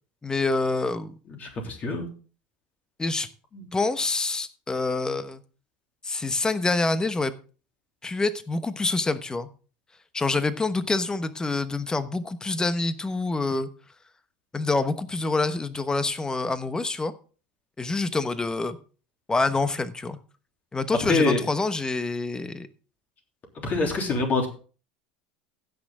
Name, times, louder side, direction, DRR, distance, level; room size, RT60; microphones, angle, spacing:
voice 1, 0.2-1.1 3.0-3.3 3.7-5.4 6.0-7.3 8.0-9.5 10.1-13.7 14.5-17.1 17.8-18.8 19.3-20.2 20.7-22.7, left 3 dB, 15° left, 12 dB, 1.1 m, -26 dB
voice 2, 1.4-2.1 3.5-3.7 21.1-21.4 23.6-24.5, left 3 dB, 40° left, 2 dB, 3.3 m, -25 dB
16.0 x 6.4 x 3.7 m, 0.37 s
hypercardioid pair, 85°, 4 cm